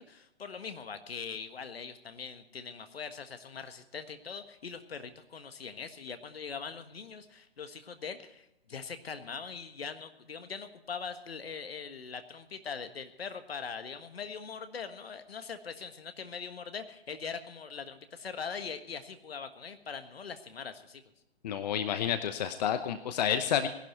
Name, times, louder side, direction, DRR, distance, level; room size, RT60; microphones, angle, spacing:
voice 1, 0.0-21.0, left 6 dB, 65° left, 9 dB, 1.6 m, -42 dB
voice 2, 21.4-23.7, left 9 dB, 40° left, 10 dB, 0.9 m, -30 dB
19.0 x 11.5 x 4.4 m, 0.85 s
figure-of-eight pair, 130°, 32 cm